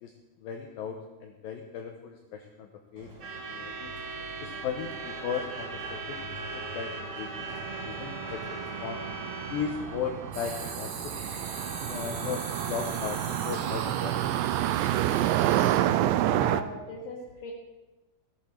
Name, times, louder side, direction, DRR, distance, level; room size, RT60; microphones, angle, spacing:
voice 1, 0.0-3.9 4.4-9.0 9.5-11.1 11.9-14.8, left 7 dB, 85° left, 3 dB, 2.0 m, -37 dB
Truck / Alarm, 3.0-14.9, right 3 dB, 50° right, 2.7 m, -40 dB
sound 1, 7.5-16.6, right 13 dB, 85° right, 2.8 m, -29 dB
sound 2, 10.3-15.8, right 5 dB, 65° right, 3.8 m, -40 dB
voice 2, 16.2-17.5, left 3 dB, 55° left, -5 dB, 2.7 m, -39 dB
15.5 x 12.0 x 4.4 m, 1.0 s
omnidirectional pair, 5.2 m